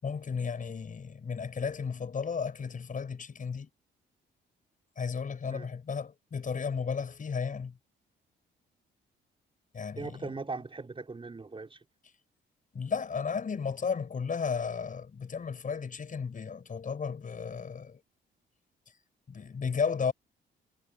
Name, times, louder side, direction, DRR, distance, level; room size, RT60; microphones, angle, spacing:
voice 1, 0.0-3.7 5.0-7.8 9.7-10.3 12.7-18.0 19.3-20.1, left 6 dB, 40° left, 6.8 m, -34 dB
voice 2, 10.0-11.8, right 3 dB, 25° right, 5.6 m, -39 dB
cardioid pair, 90°, 20 cm